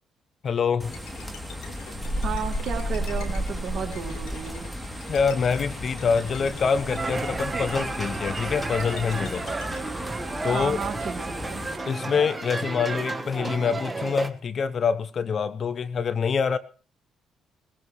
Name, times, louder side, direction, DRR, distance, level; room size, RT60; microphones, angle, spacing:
voice 1, 0.4-0.9 5.1-9.6 10.4-10.8 11.9-16.6, left 6 dB, 50° left, 15 dB, 0.9 m, -25 dB
sound 1, 0.8-11.8, equal, ahead, 3.0 m, -34 dB
Bowed string instrument, 0.9-9.8, left 7 dB, 75° left, 2.7 m, -47 dB
voice 2, 2.2-4.7 10.5-11.6, right 7 dB, 60° right, 4 dB, 2.2 m, -33 dB
sound 2, 6.9-14.3, right 3 dB, 25° right, 1.3 m, -32 dB
19.5 x 16.0 x 3.2 m, 0.37 s
hypercardioid pair, 50°, 0 cm